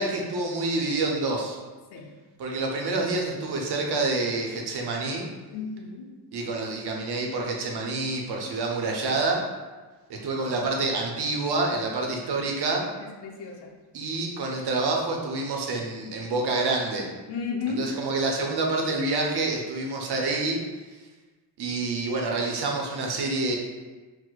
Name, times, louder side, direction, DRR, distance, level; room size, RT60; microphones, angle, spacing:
voice 1, 0.0-1.6 2.4-5.3 6.3-9.4 10.1-12.8 13.9-17.1 17.8-20.6 21.6-23.6, right 3 dB, 65° right, 0 dB, 0.7 m, -27 dB
voice 2, 5.5-6.1 10.1-10.6 13.0-13.7 17.3-17.9, left 5 dB, 70° left, 1 dB, 0.6 m, -34 dB
4.4 x 2.1 x 2.3 m, 1.3 s
cardioid pair, 120°, 42 cm